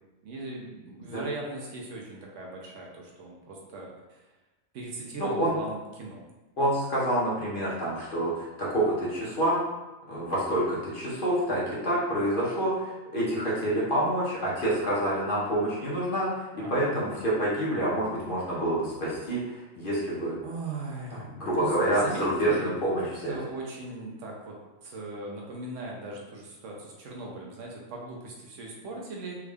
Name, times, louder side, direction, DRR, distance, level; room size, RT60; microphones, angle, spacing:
voice 1, 0.2-4.3 4.7-6.2 16.5-17.1 20.4-22.7 23.3-29.4, right 2 dB, 70° right, -1 dB, 1.0 m, -39 dB
voice 2, 5.2-5.6 6.6-9.6 10.1-20.4 21.1-23.3, right 1 dB, 45° left, -7 dB, 0.9 m, -27 dB
3.5 x 2.3 x 3.3 m, 1.1 s
omnidirectional pair, 1.4 m